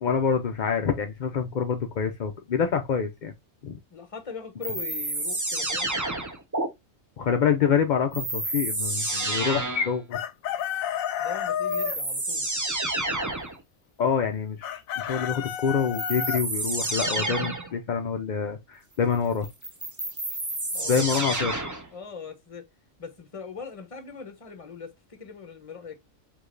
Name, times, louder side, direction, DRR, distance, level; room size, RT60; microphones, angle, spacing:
voice 1, 0.0-3.3 3.6-3.8 7.2-10.2 14.0-19.5 20.9-21.5, left 6 dB, 60° left, 0.4 m, -26 dB
voice 2, 3.9-5.9 11.2-12.5 20.7-21.1 21.9-22.7 23.0-26.0, left 6 dB, 30° left, 0.8 m, -40 dB
sound 1, 4.6-6.7 8.1-10.0 11.2-11.3 11.7-13.6 15.9-17.7 19.4-21.9, right 2 dB, 20° right, 0.6 m, -29 dB
Chicken rooster, 10.1-12.0 14.6-16.4, left 9 dB, 80° left, 1.0 m, -30 dB
4.8 x 3.6 x 2.5 m
omnidirectional pair, 1.4 m